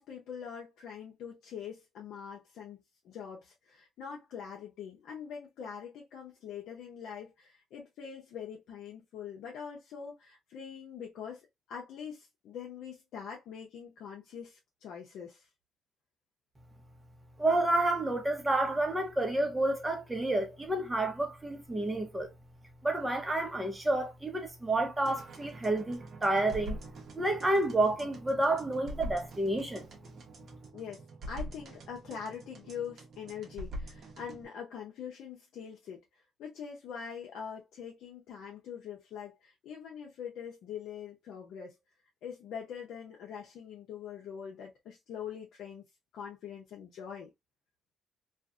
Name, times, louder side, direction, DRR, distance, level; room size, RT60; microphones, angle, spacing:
voice 1, 0.0-15.5 30.7-41.7 42.2-45.8 46.1-47.3, left 7 dB, 80° left, 0.7 m, -43 dB
voice 2, 17.4-22.3 22.8-26.8 27.1-29.9, right 2 dB, 15° right, 1.0 m, -29 dB
sound 1, 25.1-34.5, right 1 dB, 60° right, 0.9 m, -45 dB
2.5 x 2.4 x 2.3 m
cardioid pair, 90°, 0 cm